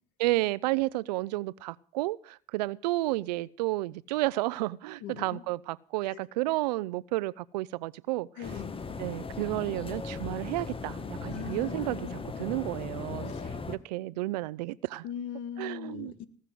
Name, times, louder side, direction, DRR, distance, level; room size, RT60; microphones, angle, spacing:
voice 1, 0.2-8.3 9.0-13.3 13.7-15.0 15.6-16.2, right 19 dB, 90° right, 0.6 m, -31 dB
voice 2, 5.0-5.4 6.0-6.2 8.4-8.8 11.3-12.3 13.2-13.5 15.0-16.3, left 9 dB, 70° left, 1.7 m, -40 dB
sound 1, 8.4-13.8, left 4 dB, 25° left, 1.6 m, -38 dB
19.0 x 6.8 x 7.7 m
supercardioid pair, 75°, 21 cm